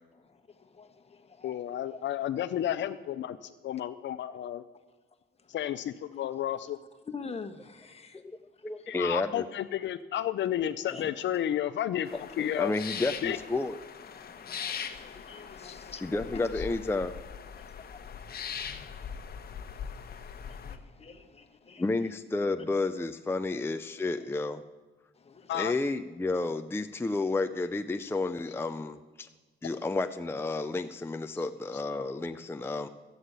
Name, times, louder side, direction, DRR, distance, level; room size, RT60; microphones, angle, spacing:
voice 1, 0.1-2.0 4.3-4.4 5.4-5.5 7.0-8.2 8.8-8.9 10.8-11.1 13.3-13.4 14.1-16.0 16.3-16.5 17.5-22.1 22.6-22.7 25.2-25.5 29.7-29.8, left 5 dB, 30° left, 7 dB, 1.4 m, -47 dB
voice 2, 1.4-4.6 5.5-6.8 8.9-12.7 13.2-13.4 15.6-15.8 25.5-25.7, left 11 dB, 65° left, 11 dB, 0.6 m, -32 dB
voice 3, 8.6-9.4 12.1-13.8 16.0-17.2 21.8-24.6 25.5-29.3 29.6-32.9, left 3 dB, 10° left, 8 dB, 0.5 m, -31 dB
sound 1, 12.0-20.8, left 7 dB, 50° left, 1.1 m, -41 dB
13.0 x 8.8 x 8.2 m, 1.3 s
cardioid pair, 90°, 20 cm